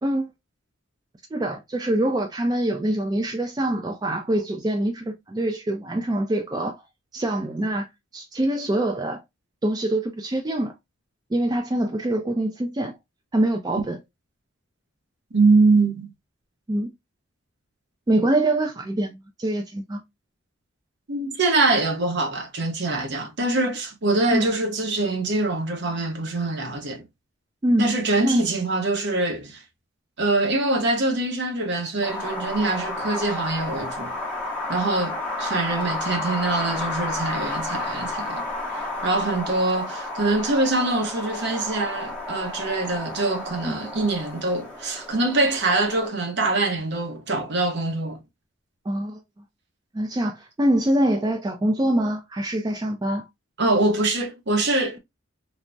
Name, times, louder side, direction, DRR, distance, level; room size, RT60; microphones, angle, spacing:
voice 1, 0.0-0.3 1.3-6.8 7.1-7.9 8.1-9.2 9.6-10.7 11.3-13.0 13.3-14.0 16.7-16.9 18.1-20.0 24.3-24.5 27.6-27.9 28.2-28.4 43.6-43.8 48.9-49.2 49.9-53.2, right 1 dB, 20° right, 0.3 m, -24 dB
voice 2, 15.3-16.1 21.1-27.0 27.8-29.6 30.2-34.1 34.7-38.4 38.7-48.2 53.6-55.0, right 2 dB, 55° right, 0.8 m, -24 dB
Wind, 32.0-46.1, left 2 dB, 5° left, 0.8 m, -31 dB
3.3 x 2.0 x 2.5 m
head